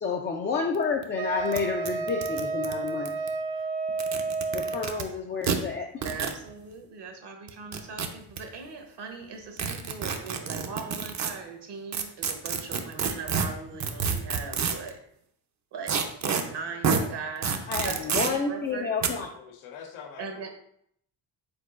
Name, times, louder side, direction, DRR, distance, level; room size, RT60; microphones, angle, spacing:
voice 1, 0.0-3.1 4.5-6.0 17.7-19.3, left 5 dB, 25° left, 2 dB, 0.4 m, -30 dB
sound 1, 0.7-0.8 1.0-1.1 1.5-1.6 1.8-3.3 3.9-5.0 5.4-5.6 6.0-6.4 7.5-8.4 9.6-11.3 11.9-14.9 15.9-16.4 16.8-17.0 17.4-18.3 19.0-19.1, right 6 dB, 40° right, 0.6 m, -28 dB
Wind instrument woodwind instrument, 1.2-5.0, right 4 dB, 90° right, 0.8 m, -31 dB
voice 2, 6.0-15.0 15.7-18.9 20.2-20.5, right 5 dB, 55° right, 4 dB, 0.9 m, -39 dB
voice 3, 19.3-20.5, left 7 dB, 85° left, 3 dB, 0.8 m, -44 dB
5.1 x 3.7 x 2.4 m, 0.70 s
supercardioid pair, 70°, 47 cm